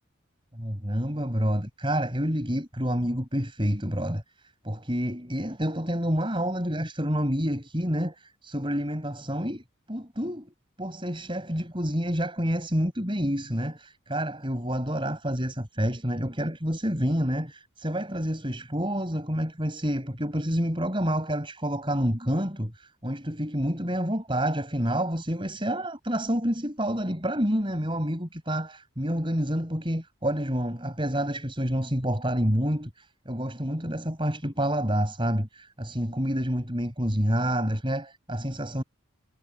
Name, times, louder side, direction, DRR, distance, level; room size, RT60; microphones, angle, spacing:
voice 1, 0.5-38.8, equal, 25° right, 6.3 m, -28 dB
head